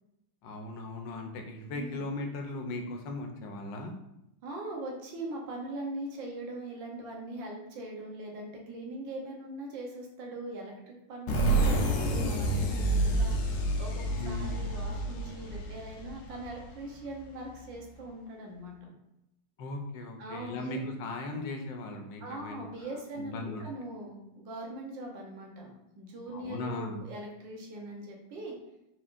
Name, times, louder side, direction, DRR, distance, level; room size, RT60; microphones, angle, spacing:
voice 1, 0.4-3.9 14.2-14.6 19.6-22.6 23.2-23.7 26.3-27.0, left 2 dB, 85° left, 3 dB, 1.4 m, -38 dB
voice 2, 1.7-2.0 4.4-18.9 20.2-20.7 22.2-28.5, right 1 dB, 80° right, 0 dB, 1.6 m, -41 dB
sound 1, 11.3-16.8, right 1 dB, 65° left, 1.1 m, -28 dB
4.3 x 4.3 x 2.5 m, 0.85 s
omnidirectional pair, 2.0 m